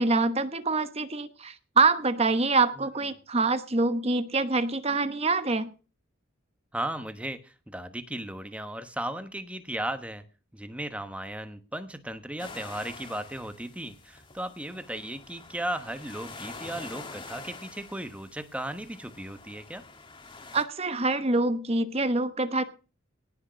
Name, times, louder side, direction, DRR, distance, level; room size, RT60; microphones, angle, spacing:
voice 1, 0.0-5.7 20.5-22.6, right 3 dB, 30° right, 12 dB, 1.1 m, -25 dB
voice 2, 6.7-10.2 10.5-19.8, right 1 dB, 5° right, 9 dB, 1.1 m, -36 dB
sound 1, 12.4-20.6, left 3 dB, 25° left, 1.7 m, -46 dB
18.0 x 6.6 x 6.3 m, 0.35 s
head